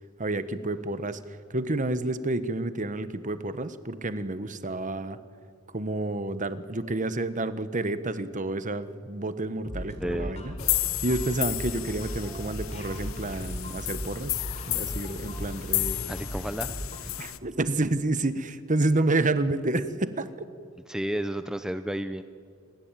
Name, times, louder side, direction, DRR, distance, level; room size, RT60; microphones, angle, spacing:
voice 1, 0.2-5.2 5.7-10.5 11.0-16.1 17.2-20.5, right 2 dB, 40° right, 12 dB, 1.4 m, -29 dB
sound 1, 9.7-17.1, equal, 30° left, 3.9 m, -37 dB
voice 2, 10.0-10.4 16.1-16.7 17.0-17.1 20.9-22.2, right 1 dB, 5° right, 10 dB, 0.7 m, -32 dB
sound 2, 10.6-17.4, left 16 dB, 90° left, 1.1 m, -33 dB
29.0 x 22.0 x 9.2 m, 2.2 s
head